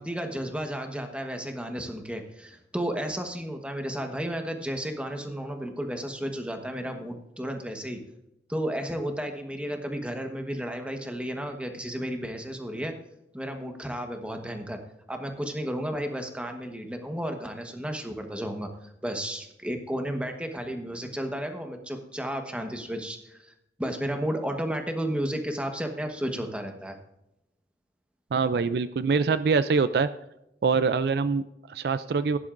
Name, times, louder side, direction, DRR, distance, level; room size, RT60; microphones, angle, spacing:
voice 1, 0.0-8.0 8.5-12.9 13.3-14.8 15.1-23.5 23.8-27.0, equal, 5° right, 4 dB, 1.2 m, -33 dB
voice 2, 28.3-30.1 30.6-32.4, right 5 dB, 60° right, 13 dB, 0.4 m, -24 dB
16.0 x 10.5 x 2.6 m, 0.85 s
head